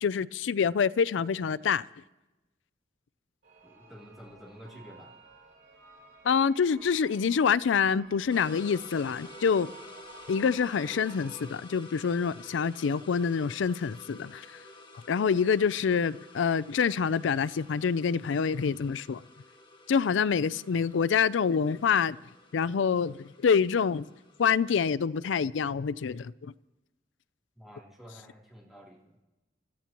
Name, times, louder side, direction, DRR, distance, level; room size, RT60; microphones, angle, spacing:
voice 1, 0.0-1.9 6.2-9.7 10.3-14.5 15.1-19.2 19.9-22.2 22.5-24.1 24.4-26.5, left 6 dB, 75° left, 0.4 m, -26 dB
sound 1, 3.4-11.4, right 4 dB, 70° right, 3.8 m, -54 dB
voice 2, 3.6-5.1 27.5-29.2, equal, ahead, 3.1 m, -50 dB
sound 2, 8.3-24.7, left 2 dB, 25° left, 1.7 m, -51 dB
29.0 x 14.0 x 3.0 m
head